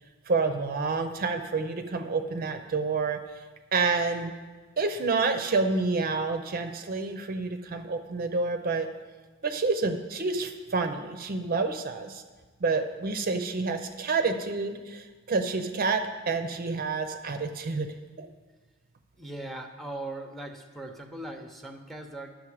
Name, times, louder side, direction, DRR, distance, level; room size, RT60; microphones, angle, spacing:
voice 1, 0.3-3.2 3.7-4.3 4.8-8.9 9.4-12.2 12.6-17.9 18.2-18.3, right 4 dB, 45° right, 7 dB, 0.5 m, -28 dB
voice 2, 19.2-22.4, right 1 dB, ahead, 5 dB, 0.7 m, -39 dB
11.0 x 6.3 x 4.9 m, 1.3 s
head